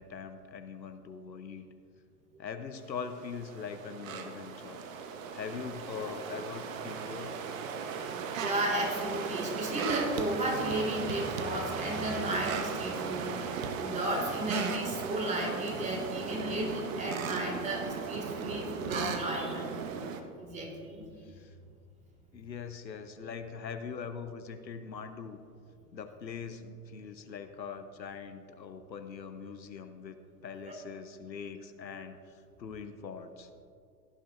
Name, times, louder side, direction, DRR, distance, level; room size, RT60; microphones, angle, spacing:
voice 1, 0.0-1.7 2.4-4.8 5.3-7.4 21.2-21.5 22.3-25.4 25.9-30.2 30.4-33.5, left 6 dB, 90° left, 8 dB, 0.9 m, -42 dB
sound 1, 2.9-20.2, right 6 dB, 50° right, 1.0 m, -37 dB
voice 2, 8.4-13.4 13.8-19.7 20.4-21.1, right 1 dB, 15° right, 0 dB, 2.1 m, -33 dB
16.5 x 10.0 x 2.5 m, 2.3 s
figure-of-eight pair, 110°, 50 cm